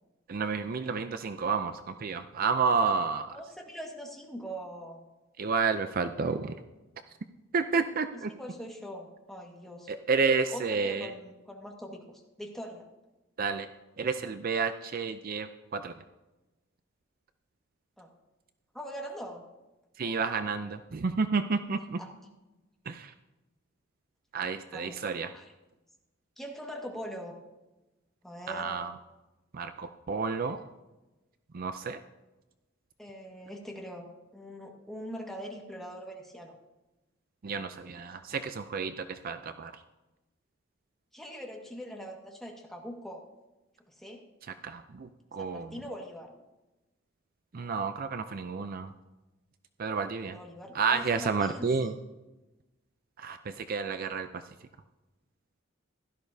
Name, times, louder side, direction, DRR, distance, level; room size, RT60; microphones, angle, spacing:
voice 1, 0.3-3.4 5.4-6.5 7.5-8.3 9.9-11.1 13.4-13.7 14.0-15.9 20.0-22.0 22.9-23.1 24.3-25.3 28.5-28.9 29.5-30.6 31.5-32.0 37.4-39.7 44.6-45.7 47.5-48.9 49.8-50.4 50.7-52.0 53.2-54.4, right 5 dB, 50° right, 9 dB, 0.5 m, -30 dB
voice 2, 3.3-5.0 8.1-9.9 10.5-12.9 18.0-18.1 18.7-19.4 22.0-22.1 24.7-25.0 25.3-25.5 26.4-27.4 28.2-28.8 33.0-36.5 41.1-43.2 43.9-44.2 45.4-46.3 50.2-51.9, equal, ahead, -1 dB, 1.7 m, -42 dB
16.0 x 12.5 x 2.7 m, 1.0 s
head